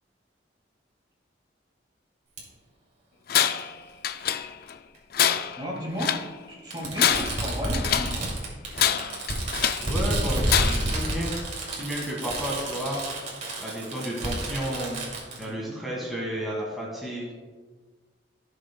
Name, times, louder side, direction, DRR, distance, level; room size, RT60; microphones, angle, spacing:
Fireworks, 2.4-2.5 3.6-3.7 4.9-5.0 6.7-15.4, right 1 dB, 40° right, 2.5 m, -30 dB
Tools, 3.3-3.7 4.0-4.7 5.1-6.3 6.8-8.2 8.7-9.9 10.5-11.0, left 10 dB, 55° left, 0.4 m, -25 dB
voice 1, 5.6-6.2 6.5-8.3 15.3-15.9, equal, 25° right, -2 dB, 1.9 m, -34 dB
voice 2, 9.8-11.4 11.7-13.0 13.6-15.0 15.4-17.3, equal, ahead, -5 dB, 1.7 m, -32 dB
16.0 x 6.8 x 2.2 m, 1.4 s
head